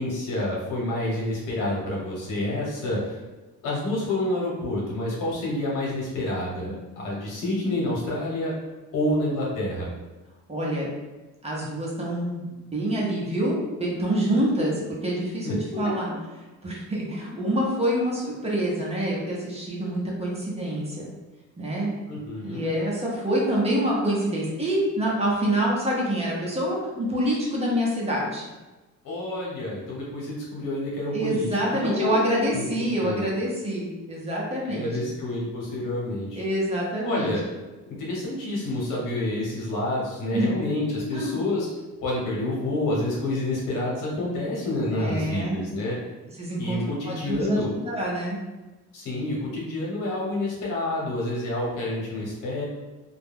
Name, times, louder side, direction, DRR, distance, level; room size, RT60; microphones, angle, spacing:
voice 1, 0.0-3.2 3.6-8.5 8.9-9.9 15.4-15.9 22.1-22.6 29.0-32.3 32.5-32.6 33.0-33.3 34.6-36.4 37.0-37.4 37.9-41.7 42.0-46.0 46.6-47.7 48.9-52.6, left 1 dB, 80° left, -4 dB, 1.1 m, -28 dB
voice 2, 10.5-10.9 11.4-12.4 12.7-14.7 15.0-15.5 15.8-16.1 16.6-21.1 21.6-22.0 22.4-28.5 31.1-34.9 36.3-37.3 40.3-40.5 41.1-41.4 44.9-45.6 46.4-46.8 47.1-48.4, right 1 dB, 20° right, -4 dB, 0.8 m, -26 dB
2.4 x 2.1 x 3.4 m, 1.1 s
cardioid pair, 115°, 32 cm